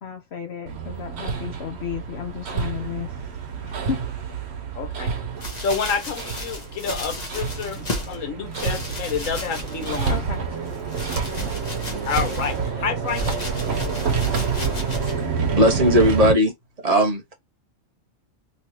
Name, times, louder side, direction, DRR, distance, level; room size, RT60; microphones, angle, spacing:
voice 1, 0.0-3.1 3.6-4.0 10.1-10.4, left 8 dB, 60° left, 0.9 m, -33 dB
Hammer, 0.7-16.3, right 6 dB, 60° right, 0.9 m, -28 dB
voice 2, 4.8-5.1 5.6-10.2 12.1-13.5, left 6 dB, 85° left, 1.4 m, -29 dB
sound 1, 5.4-8.2 8.5-10.3 10.7-12.7 13.1-15.2 15.9-16.0, left 1 dB, 35° left, 1.1 m, -33 dB
voice 3, 15.5-16.5 16.8-17.2, equal, 30° right, 1.1 m, -17 dB
3.2 x 2.9 x 2.7 m
omnidirectional pair, 1.3 m